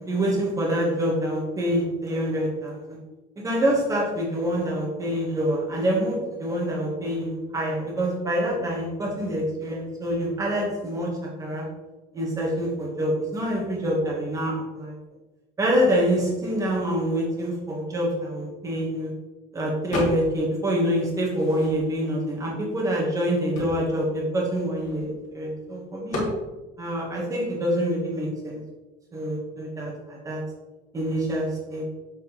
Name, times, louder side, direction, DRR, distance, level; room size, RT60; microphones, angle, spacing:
voice 1, 0.1-3.0 3.4-11.6 12.1-14.9 15.6-19.1 19.5-26.3 26.8-28.6 29.1-30.4 30.9-31.8, equal, 15° right, -2 dB, 1.6 m, -26 dB
sound 1, 19.9-20.5 20.8-22.1 22.7-22.8 23.0-25.3 26.1-26.4, left 1 dB, 35° left, 2.1 m, -33 dB
7.4 x 6.2 x 3.3 m, 1.1 s
cardioid pair, 175°, 21 cm